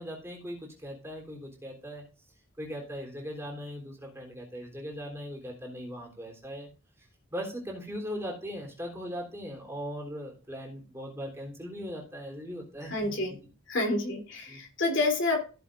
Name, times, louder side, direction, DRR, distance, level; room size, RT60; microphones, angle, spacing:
voice 1, 0.0-2.0 2.6-6.7 7.3-13.4 14.5-14.6, equal, 10° right, -1 dB, 3.5 m, -39 dB
voice 2, 12.9-13.3 13.7-15.4, left 2 dB, 55° left, 3 dB, 3.2 m, -28 dB
16.0 x 7.5 x 2.5 m, 0.34 s
head